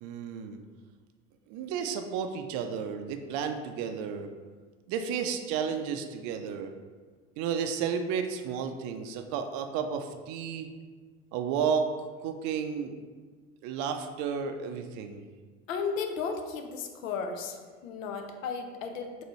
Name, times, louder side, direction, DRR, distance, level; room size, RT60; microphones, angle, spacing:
voice 1, 0.0-0.6 1.5-4.3 4.9-6.7 7.4-10.7 11.3-11.9 12.2-13.0 13.6-15.2, right 7 dB, 50° right, 7 dB, 0.4 m, -32 dB
voice 2, 15.7-19.2, left 5 dB, 75° left, 5 dB, 0.6 m, -34 dB
4.0 x 2.6 x 3.0 m, 1.5 s
hypercardioid pair, 70°, 39 cm